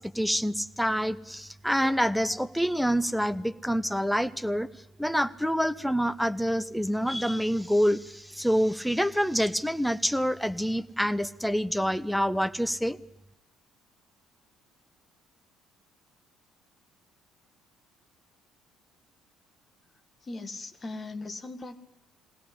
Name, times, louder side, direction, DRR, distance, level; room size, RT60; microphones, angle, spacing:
voice 1, 0.0-13.0, equal, ahead, 13 dB, 1.0 m, -27 dB
voice 2, 19.8-21.8, left 2 dB, 30° left, 9 dB, 2.0 m, -40 dB
22.5 x 17.0 x 10.0 m, 0.82 s
figure-of-eight pair, 50°, 0 cm